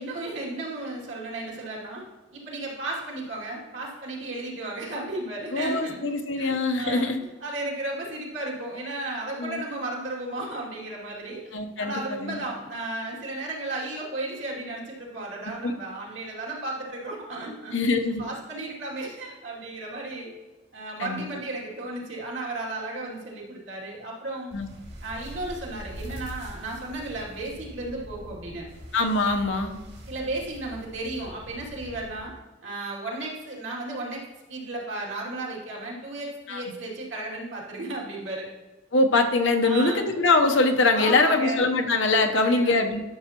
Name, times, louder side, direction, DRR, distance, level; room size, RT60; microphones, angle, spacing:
voice 1, 0.0-2.0 2.3-6.0 6.4-11.4 11.8-17.8 18.2-20.4 20.7-24.5 25.0-28.7 30.1-32.3 32.6-34.2 34.5-38.5 39.6-40.0 40.9-41.6 42.3-42.9, right 2 dB, 70° right, -4 dB, 2.5 m, -34 dB
voice 2, 5.5-7.2 9.4-9.6 11.5-12.4 15.6-15.7 17.7-18.2 21.0-21.3 24.5-24.7 28.9-29.8 36.5-36.6 38.9-43.0, left 3 dB, 65° left, 5 dB, 0.8 m, -23 dB
sound 1, 24.5-32.2, equal, 55° right, 2.2 m, -43 dB
11.5 x 7.0 x 2.9 m, 1.2 s
head